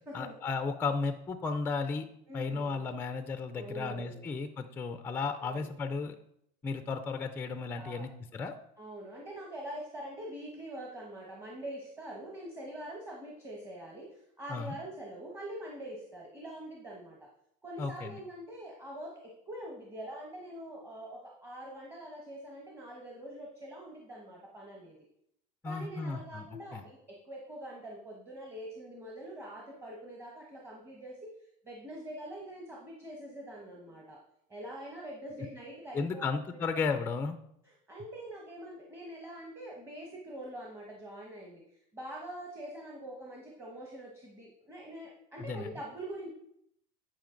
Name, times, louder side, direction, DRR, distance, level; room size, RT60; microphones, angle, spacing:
voice 1, 0.1-2.1 2.3-6.2 6.6-8.5 14.5-14.8 17.8-18.2 25.6-26.8 35.9-37.4 45.4-45.7, left 4 dB, 10° left, 8 dB, 0.4 m, -34 dB
voice 2, 2.3-2.9 3.5-4.3 5.4-5.7 7.7-8.1 8.8-14.1 14.4-17.3 17.6-25.0 25.6-31.3 31.6-34.2 34.5-36.6 37.6-41.6 41.9-46.3, right 1 dB, 15° right, -1 dB, 1.1 m, -44 dB
10.5 x 5.1 x 3.8 m, 0.73 s
cardioid pair, 160°, 19 cm